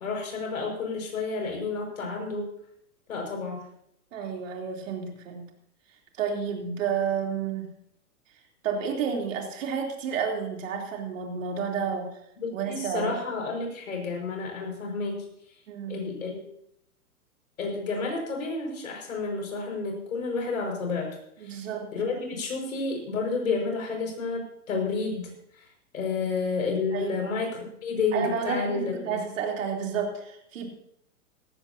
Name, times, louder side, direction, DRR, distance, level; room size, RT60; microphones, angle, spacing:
voice 1, 0.0-2.5 3.1-3.7 12.4-15.2 15.9-16.4 17.6-21.1 21.4-21.6 21.9-25.6 25.9-29.1, left 4 dB, 65° left, 2 dB, 5.7 m, -30 dB
voice 2, 4.1-5.5 6.2-7.7 8.6-12.1 12.5-13.2 15.7-16.0 21.4-21.9 26.9-27.3 28.1-30.7, right 6 dB, 55° right, 1 dB, 3.6 m, -30 dB
18.0 x 15.0 x 2.9 m, 0.73 s
figure-of-eight pair, 115°, 45 cm